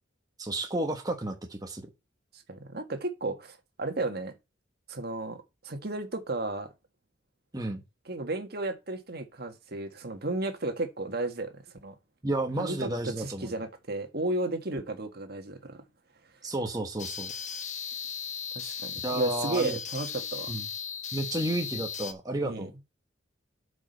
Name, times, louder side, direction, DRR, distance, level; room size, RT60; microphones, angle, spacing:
voice 1, 0.4-1.9 7.5-7.8 12.2-13.5 16.4-17.3 19.0-19.8 20.5-20.7 21.1-22.7, right 1 dB, 20° right, 1.2 m, -32 dB
voice 2, 2.3-4.3 4.9-6.7 8.0-11.5 11.8-11.9 12.6-15.8 18.5-20.5 22.4-22.7, right 2 dB, 55° right, 1.6 m, -33 dB
sound 1, 17.0-22.1, left 7 dB, 40° left, 1.0 m, -37 dB
8.3 x 5.1 x 5.4 m
head